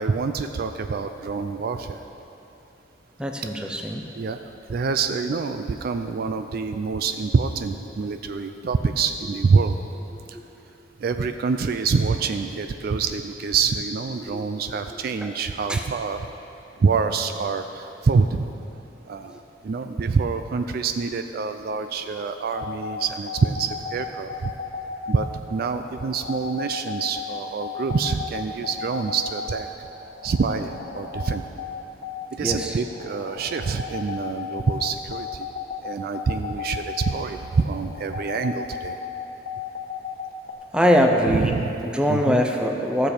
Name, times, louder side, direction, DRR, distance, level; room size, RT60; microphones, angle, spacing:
voice 1, 0.0-2.0 3.6-3.7 4.2-4.4 4.7-9.8 10.3-10.4 11.0-16.3 16.8-18.4 19.1-24.5 25.1-29.7 30.2-31.4 32.3-35.5 35.8-39.0 41.3-41.7 42.1-42.4, right 5 dB, 55° right, 8 dB, 0.3 m, -26 dB
voice 2, 3.2-4.0 10.1-10.2 14.2-14.4 15.2-15.3 15.7-15.8 32.4-32.7 40.7-41.5 41.8-43.1, equal, 5° right, 2 dB, 0.7 m, -22 dB
sound 1, 22.5-40.5, left 6 dB, 85° left, 1.1 m, -35 dB
14.5 x 6.8 x 4.3 m, 2.9 s
head